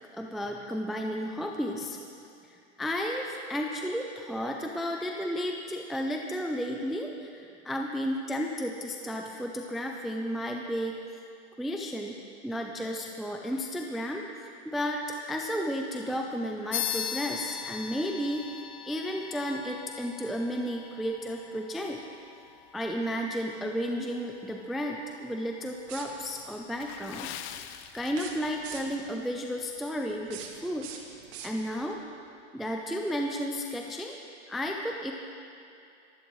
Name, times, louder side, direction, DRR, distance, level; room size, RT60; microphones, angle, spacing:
voice 1, 0.1-2.0 2.4-11.0 11.6-12.2 12.4-18.5 18.8-22.0 22.7-27.3 27.9-30.9 31.4-32.0 32.5-34.2 34.5-35.1, equal, ahead, 1 dB, 0.3 m, -33 dB
sound 1, 16.7-26.7, left 9 dB, 70° left, 1.0 m, -41 dB
sound 2, 25.8-26.5 28.1-29.1 30.1-31.9, right 7 dB, 65° right, 2.2 m, -44 dB
Water / Splash splatter, 26.7-28.7 29.0-29.2 29.8-30.0 30.4-30.5, left 10 dB, 35° left, 0.7 m, -43 dB
23.5 x 15.5 x 3.1 m, 2.5 s
supercardioid pair, 140°, 35 cm